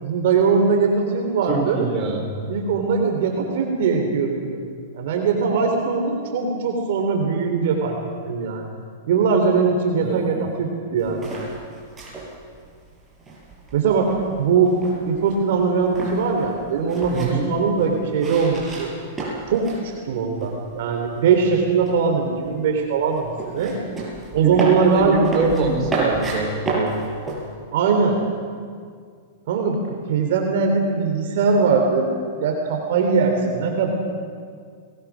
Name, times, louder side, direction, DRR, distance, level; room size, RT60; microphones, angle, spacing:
voice 1, 0.0-1.9 2.5-4.6 4.9-8.0 8.3-8.6 9.1-11.3 13.7-14.1 14.4-14.7 15.0-18.9 19.5-23.8 24.3-25.2 27.7-28.2 29.5-32.1 32.4-33.9, right 5 dB, 65° right, 2 dB, 3.4 m, -21 dB
voice 2, 1.5-2.3 10.0-10.3 17.1-17.5 24.4-24.7 24.9-27.0, right 4 dB, 30° right, 0 dB, 5.5 m, -25 dB
sound 1, 11.0-19.9 20.1-21.0 21.3-27.5, right 2 dB, 15° right, 6.9 m, -31 dB
29.0 x 20.0 x 6.3 m, 2.1 s
hypercardioid pair, 135°, 0 cm